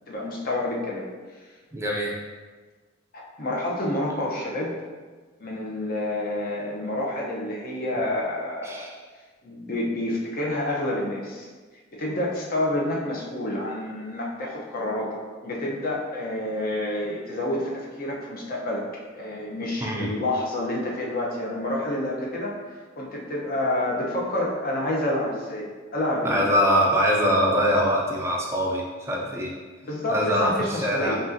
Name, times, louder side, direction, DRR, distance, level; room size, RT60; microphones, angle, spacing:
voice 1, 0.1-1.1 3.1-4.7 5.4-8.9 9.4-11.5 11.9-18.9 19.1-26.4 29.8-31.2, left 1 dB, 50° left, -2 dB, 0.7 m, -28 dB
voice 2, 1.7-2.2 8.6-8.9 19.8-20.1 26.2-29.5 30.1-31.2, equal, 15° right, -2 dB, 0.4 m, -23 dB
5.2 x 2.4 x 2.6 m, 1.4 s
head